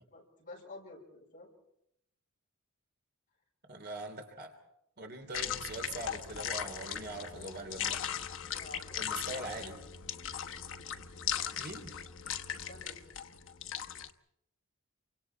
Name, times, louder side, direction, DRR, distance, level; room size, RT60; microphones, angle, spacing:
voice 1, 0.1-1.5 8.5-9.5 12.5-13.0, left 2 dB, 40° left, 0 dB, 6.4 m, -51 dB
voice 2, 3.7-4.6 5.0-8.0 9.0-9.8 11.6-11.9, right 2 dB, 50° right, 5 dB, 3.1 m, -42 dB
sound 1, 5.3-14.1, left 9 dB, 60° left, 1.1 m, -38 dB
29.0 x 25.0 x 4.6 m, 0.77 s
head